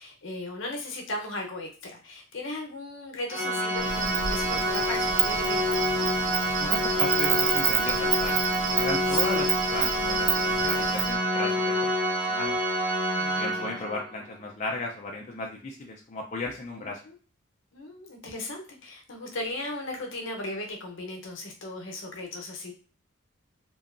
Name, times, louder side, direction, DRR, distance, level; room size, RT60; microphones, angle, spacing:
voice 1, 0.0-6.0 9.1-9.3 13.1-13.8 16.8-17.1 17.7-22.7, left 2 dB, 75° left, 1 dB, 0.7 m, -37 dB
Organ, 3.3-14.1, equal, 5° right, 0.7 m, -27 dB
Insect, 3.8-11.2, right 8 dB, 70° right, 0.3 m, -29 dB
voice 2, 6.6-8.4 8.8-12.6 13.3-17.0, left 2 dB, 35° left, 0 dB, 0.4 m, -35 dB
2.7 x 2.3 x 2.4 m, 0.39 s
head